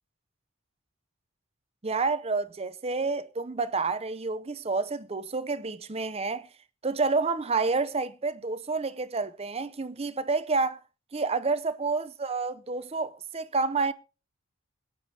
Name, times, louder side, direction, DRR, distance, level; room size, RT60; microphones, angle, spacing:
voice 1, 1.8-6.5 6.8-10.8 11.1-13.9, right 4 dB, 25° right, 0.6 m, -29 dB
23.5 x 9.0 x 2.8 m
head